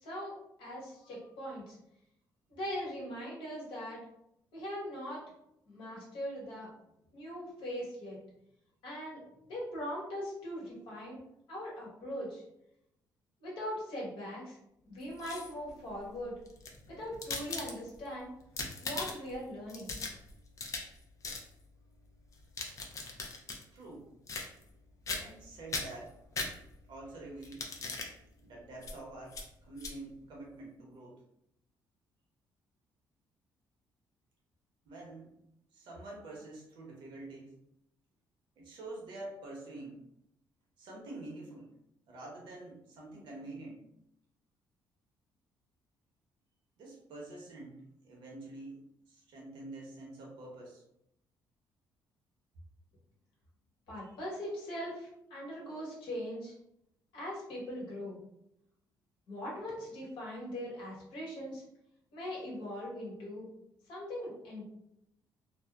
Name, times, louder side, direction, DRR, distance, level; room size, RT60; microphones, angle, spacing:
voice 1, 0.0-1.8 2.5-4.0 4.5-5.2 5.7-6.7 7.1-8.2 8.8-9.2 9.5-11.2 11.5-12.4 13.4-14.6 14.8-16.3 16.9-18.3 18.8-19.9 53.9-56.5 57.1-58.2 59.3-61.6 62.1-63.5 63.9-64.7, equal, 80° left, -5 dB, 1.2 m, -40 dB
sound 1, 15.0-15.7 16.5-18.1 18.4-19.4 19.7-21.0 21.2-21.5 22.3-23.6 24.3-24.8 25.1-25.4 25.7-26.9 27.4-28.1 28.8-29.0 29.3-29.5 29.8-29.9, left 3 dB, 40° left, 0.5 m, -39 dB
voice 2, 23.7-24.1 25.2-26.2 26.8-27.7 28.4-31.2 34.8-35.3 35.7-37.5 38.6-40.0 40.8-41.7 42.1-43.8 46.8-48.8 49.1-50.8 54.0-54.2, right 2 dB, 75° right, -2 dB, 0.9 m, -47 dB
2.7 x 2.1 x 2.3 m, 0.80 s
cardioid pair, 100°, 8 cm